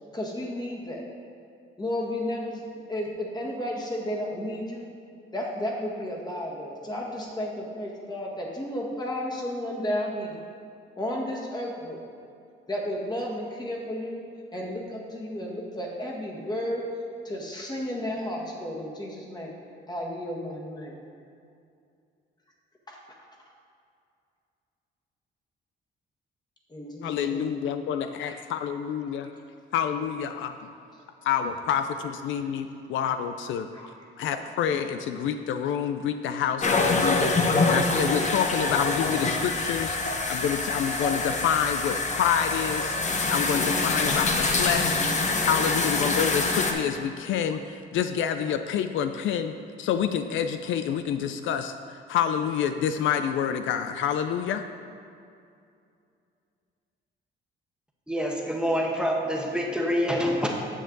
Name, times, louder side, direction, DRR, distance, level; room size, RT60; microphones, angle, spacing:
voice 1, 0.1-1.0 1.8-2.6 2.9-4.9 5.3-10.4 11.0-12.0 12.7-14.2 14.5-16.8 17.2-19.5 19.9-20.9 22.9-23.0 26.7-27.6 28.3-28.4 31.2-31.3 33.2-33.3 33.7-34.1, left 1 dB, 20° left, -2 dB, 1.7 m, -33 dB
voice 2, 27.0-29.3 29.7-30.5 31.2-33.7 34.2-45.1 45.4-49.5 49.8-54.6, left 8 dB, 75° left, 8 dB, 0.4 m, -28 dB
sound 1, 36.6-46.7, left 3 dB, 35° left, 1.0 m, -25 dB
voice 3, 58.1-60.5, equal, 5° right, -1 dB, 1.1 m, -26 dB
9.0 x 6.6 x 3.9 m, 2.5 s
cardioid pair, 90°, 20 cm